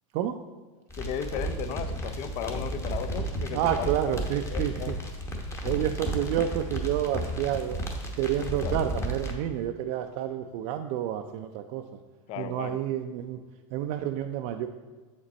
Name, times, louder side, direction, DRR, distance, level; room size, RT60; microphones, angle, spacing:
sound 1, 0.9-9.3, right 1 dB, 15° left, 0.9 m, -33 dB
voice 1, 1.0-3.6 4.5-5.0 8.6-8.7 12.3-12.8, left 8 dB, 40° left, 10 dB, 0.4 m, -35 dB
voice 2, 3.5-5.0 5.6-7.8 8.1-12.0 12.4-13.4 13.7-14.7, right 11 dB, 55° right, 5 dB, 0.4 m, -29 dB
7.2 x 5.2 x 4.1 m, 1.4 s
supercardioid pair, 130°, 17 cm